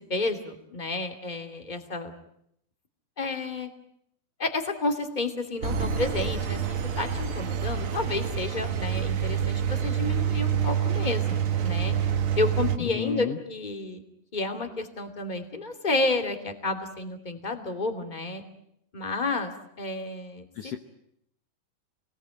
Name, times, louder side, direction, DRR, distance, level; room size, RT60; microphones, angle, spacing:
voice 1, 0.1-2.1 3.2-3.7 4.4-12.0 12.4-14.0 14.3-18.4 18.9-19.5 19.8-20.4, left 2 dB, 15° left, 7 dB, 2.0 m, -31 dB
Engine, 5.6-12.8, right 8 dB, 60° right, 1.4 m, -27 dB
voice 2, 12.8-13.4 20.5-20.8, left 11 dB, 70° left, 6 dB, 1.4 m, -32 dB
29.0 x 20.5 x 9.1 m, 0.75 s
omnidirectional pair, 4.5 m